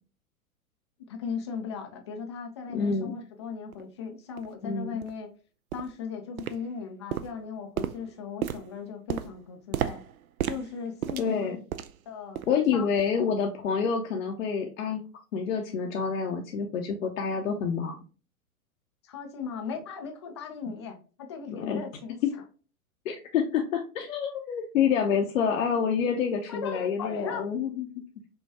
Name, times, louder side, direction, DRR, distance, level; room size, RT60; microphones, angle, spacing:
voice 1, 1.0-5.3 5.7-10.0 10.4-11.5 12.1-12.4 12.7-12.9 13.1-13.3 19.0-22.4 26.5-27.4, left 6 dB, 20° left, 4 dB, 0.3 m, -37 dB
voice 2, 2.7-3.1 4.6-5.0 11.2-11.6 12.5-15.0 15.3-18.0 21.5-21.8 23.0-27.8, left 6 dB, 60° left, 2 dB, 0.7 m, -28 dB
sound 1, 3.7-3.8 4.4-4.5 5.0-5.2 5.7-6.0 6.4-6.8 7.1-12.0 12.3-12.6 13.0-13.2 13.7-13.8, right 10 dB, 70° right, 0.5 m, -34 dB
5.5 x 2.2 x 2.7 m, 0.36 s
figure-of-eight pair, 105°, 44 cm